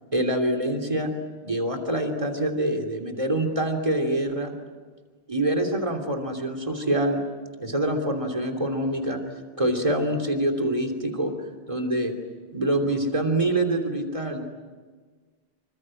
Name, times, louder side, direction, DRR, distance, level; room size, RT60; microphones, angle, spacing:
voice 1, 0.1-1.1 1.4-4.5 5.3-7.2 7.6-9.2 9.6-11.3 11.7-12.1 12.5-14.5, right 1 dB, 30° right, 3 dB, 3.2 m, -25 dB
26.5 x 25.0 x 7.8 m, 1.5 s
omnidirectional pair, 1.1 m